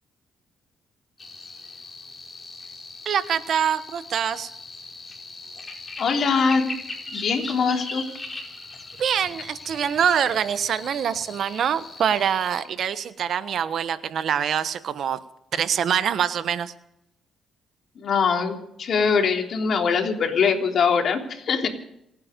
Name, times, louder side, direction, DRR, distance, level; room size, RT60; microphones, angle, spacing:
sound 1, 1.2-12.6, left 3 dB, 25° left, 5.3 m, -39 dB
voice 1, 3.0-4.5 9.0-15.2 15.5-16.7, right 8 dB, 65° right, 13 dB, 1.1 m, -24 dB
voice 2, 6.0-6.7 7.1-8.0 18.0-21.7, left 5 dB, 60° left, 2 dB, 3.5 m, -22 dB
28.0 x 9.8 x 5.3 m, 0.79 s
cardioid pair, 90°, 0 cm